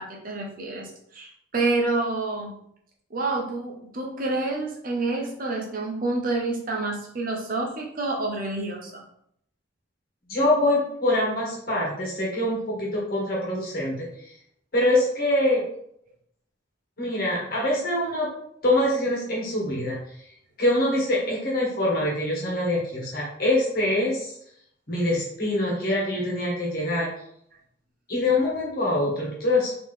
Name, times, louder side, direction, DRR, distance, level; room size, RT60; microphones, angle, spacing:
voice 1, 0.0-2.5 3.1-9.0, right 2 dB, 45° right, 1 dB, 0.7 m, -28 dB
voice 2, 10.3-14.1 14.7-15.6 17.0-18.3 18.6-20.0 20.6-24.3 24.9-27.1 28.1-29.8, left 1 dB, 50° left, -4 dB, 1.5 m, -24 dB
3.7 x 2.9 x 3.4 m, 0.70 s
head